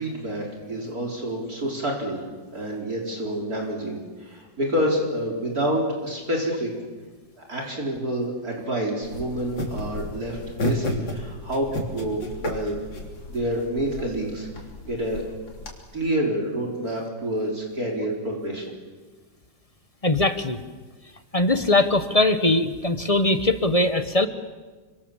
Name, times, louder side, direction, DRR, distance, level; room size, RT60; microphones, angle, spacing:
voice 1, 0.0-2.3 2.5-6.7 7.4-12.8 13.3-15.2 15.9-18.7, right 1 dB, 45° right, 0 dB, 4.5 m, -28 dB
sound 1, 9.0-15.7, left 1 dB, 70° left, 4.4 m, -33 dB
voice 2, 20.0-20.6 21.3-24.3, left 2 dB, 25° left, 10 dB, 1.0 m, -21 dB
29.5 x 25.0 x 7.4 m, 1.3 s
omnidirectional pair, 2.1 m